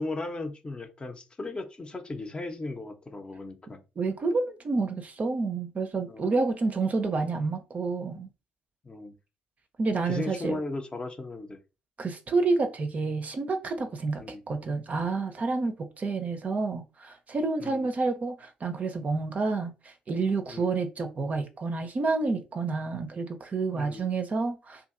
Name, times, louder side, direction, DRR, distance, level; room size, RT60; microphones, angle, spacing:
voice 1, 0.0-3.8 6.1-6.4 8.8-9.2 10.0-11.6 14.2-14.4 17.6-17.9 20.5-20.7 23.7-24.0, left 2 dB, 25° left, 0.6 m, -36 dB
voice 2, 4.0-8.3 9.8-10.6 12.0-14.2 14.5-24.8, right 3 dB, 40° right, 0.6 m, -29 dB
2.6 x 2.6 x 2.5 m
figure-of-eight pair, 45°, 4 cm